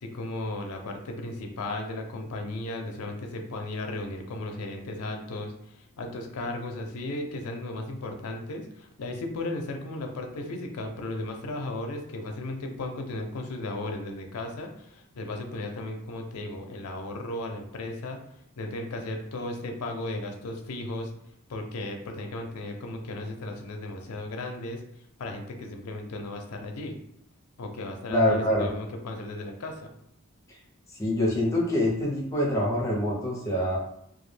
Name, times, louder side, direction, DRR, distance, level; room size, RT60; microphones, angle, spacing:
voice 1, 0.0-18.2 18.6-21.1 21.5-24.8 25.2-26.9 27.6-29.9, left 2 dB, 85° left, 3 dB, 0.4 m, -35 dB
voice 2, 28.1-28.7 31.0-33.8, left 1 dB, 15° left, -4 dB, 0.6 m, -25 dB
2.3 x 2.1 x 3.2 m, 0.75 s
head